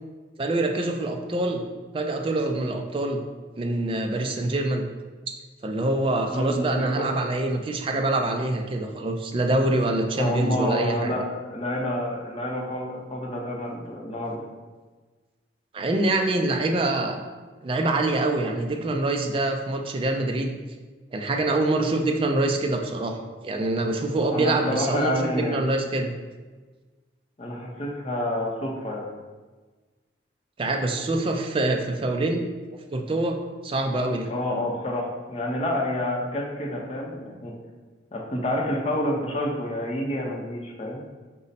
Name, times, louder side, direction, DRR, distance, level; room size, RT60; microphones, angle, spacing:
voice 1, 0.4-1.6 1.9-3.2 3.6-4.9 5.3-5.4 5.6-11.2 15.7-17.2 17.6-20.6 21.1-23.2 23.4-26.1 30.6-32.5 32.9-33.4 33.6-34.3, right 2 dB, 30° right, 3 dB, 0.3 m, -25 dB
voice 2, 6.3-7.1 10.2-14.4 24.3-25.6 27.4-29.1 34.3-37.5 38.1-41.0, left 1 dB, 30° left, -2 dB, 0.6 m, -28 dB
5.2 x 2.1 x 4.0 m, 1.3 s
head